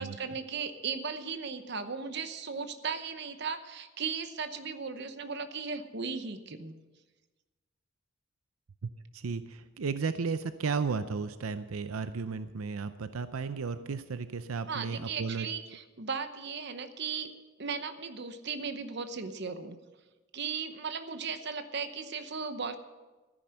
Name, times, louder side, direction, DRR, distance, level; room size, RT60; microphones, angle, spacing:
voice 1, 0.0-6.7 14.7-17.3 17.6-19.8 20.3-22.8, right 5 dB, 55° right, 10 dB, 0.9 m, -36 dB
voice 2, 8.8-15.5, right 5 dB, 90° right, 12 dB, 0.6 m, -34 dB
13.5 x 10.5 x 6.4 m, 1.2 s
head